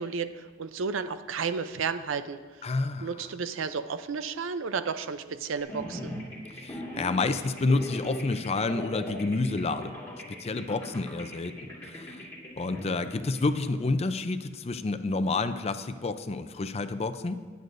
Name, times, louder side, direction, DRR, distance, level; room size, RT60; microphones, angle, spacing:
voice 1, 0.0-2.6 3.0-6.1, right 5 dB, 80° right, 11 dB, 0.5 m, -32 dB
voice 2, 2.6-3.1 6.5-9.9 10.3-12.2 12.6-17.4, left 3 dB, 30° left, 11 dB, 0.5 m, -29 dB
sound 1, 5.6-13.9, left 1 dB, 15° left, 2.0 m, -40 dB
19.5 x 8.0 x 2.6 m, 1.4 s
head